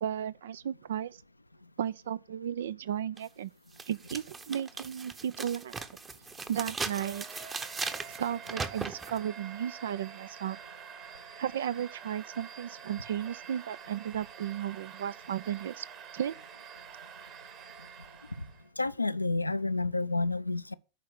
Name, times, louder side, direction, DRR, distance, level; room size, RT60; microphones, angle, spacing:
voice 1, 0.0-1.2 1.8-3.5 3.9-5.7 6.5-7.2 8.1-10.6 11.4-15.9 16.1-16.3, right 9 dB, 60° right, 0.5 m, -34 dB
sound 1, 3.2-3.3 3.8-9.2, right 4 dB, 15° right, 1.0 m, -38 dB
Domestic sounds home sounds, 6.6-18.7, right 7 dB, 35° right, 1.7 m, -48 dB
voice 2, 18.8-20.7, left 3 dB, 85° left, 0.6 m, -30 dB
11.0 x 4.8 x 7.6 m
figure-of-eight pair, 90°, 0 cm